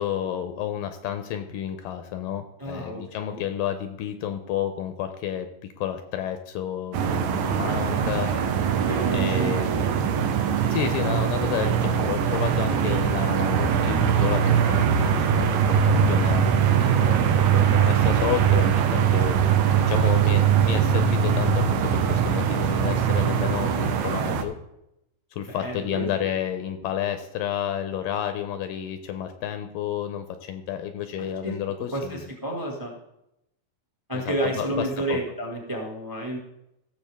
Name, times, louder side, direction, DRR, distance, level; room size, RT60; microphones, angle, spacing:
voice 1, 0.0-5.5 5.8-8.3 9.1-9.7 10.7-19.4 19.8-24.5 25.3-32.2 34.1-34.7 35.1-35.2, left 10 dB, 80° left, 8 dB, 2.1 m, -31 dB
voice 2, 2.6-3.4 7.8-8.6 8.9-9.8 25.5-26.1 31.2-31.6 31.9-32.9 34.1-36.4, right 2 dB, 20° right, 0 dB, 0.6 m, -31 dB
sound 1, 6.9-24.4, right 8 dB, 75° right, 1.8 m, -22 dB
16.5 x 7.1 x 3.5 m, 0.83 s
omnidirectional pair, 4.3 m